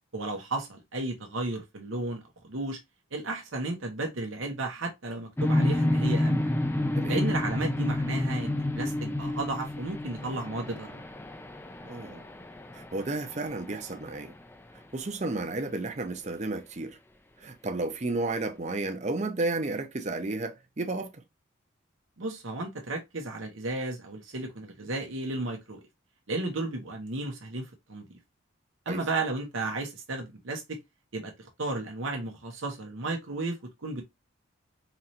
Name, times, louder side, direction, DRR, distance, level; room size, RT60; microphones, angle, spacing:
voice 1, 0.1-2.8 3.1-6.5 7.1-11.0 22.2-25.8 26.3-28.2 28.9-30.8 31.1-34.0, right 2 dB, 70° right, 0.9 m, -34 dB
sound 1, 5.4-14.3, left 1 dB, 10° left, 0.4 m, -29 dB
voice 2, 11.8-12.3 12.7-14.3 14.7-17.0 17.4-21.2 28.9-29.0, right 2 dB, 35° right, 0.6 m, -32 dB
4.0 x 3.1 x 2.8 m
head